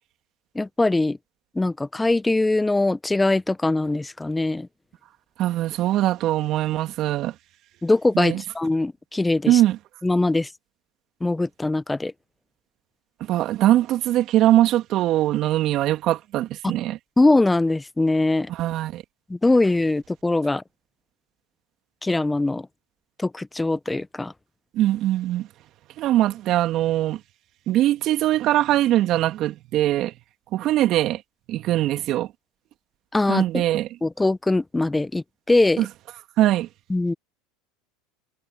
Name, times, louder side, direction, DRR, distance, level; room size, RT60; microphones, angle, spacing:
voice 1, 0.5-1.2 1.5-4.7 7.8-9.6 10.0-10.5 11.2-12.1 16.6-16.7 17.2-18.5 19.3-20.6 22.0-22.7 23.2-24.3 33.1-33.6 34.0-35.9 36.9-37.1, left 2 dB, 10° left, 1.0 m, -22 dB
voice 2, 5.4-7.3 8.1-8.4 9.5-9.8 13.2-17.0 18.5-19.0 24.7-25.5 26.0-27.2 27.7-30.1 30.5-31.2 31.5-32.3 33.3-33.9 35.8-35.9 36.4-36.7, right 14 dB, 50° right, 2.9 m, -21 dB
hypercardioid pair, 95°, 0 cm